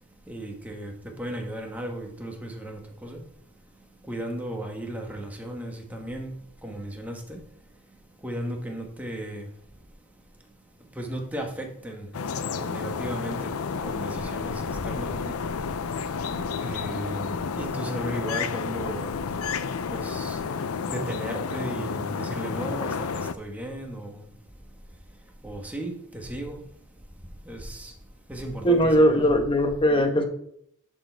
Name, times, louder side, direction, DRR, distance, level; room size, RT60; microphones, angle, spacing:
voice 1, 0.3-3.2 4.1-6.3 6.6-7.4 8.2-9.5 10.9-12.1 12.5-13.5 13.8-15.4 16.6-19.1 19.9-20.6 20.9-24.2 25.4-26.6 27.5-27.9 28.3-29.4, right 1 dB, 5° right, 1.2 m, -35 dB
sound 1, 12.1-23.3, left 5 dB, 75° left, 0.5 m, -31 dB
voice 2, 28.6-30.2, equal, 25° left, 1.0 m, -20 dB
11.0 x 4.4 x 4.5 m
head